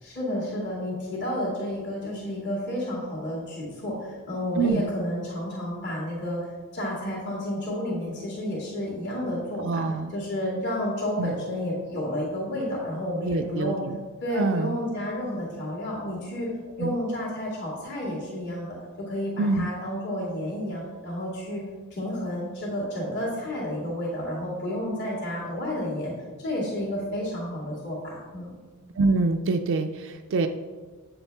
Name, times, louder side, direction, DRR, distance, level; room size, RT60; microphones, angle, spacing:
voice 1, 0.0-9.8 10.1-13.8 14.2-16.5 16.8-21.6 21.9-26.1 26.4-28.5, left 1 dB, 55° left, -6 dB, 2.3 m, -31 dB
voice 2, 4.6-4.9 9.6-10.1 11.2-11.3 13.2-14.0 14.3-14.8 16.8-16.9 19.4-19.7 29.0-30.5, right 3 dB, 60° right, 6 dB, 0.4 m, -25 dB
8.6 x 7.0 x 3.5 m, 1.4 s
head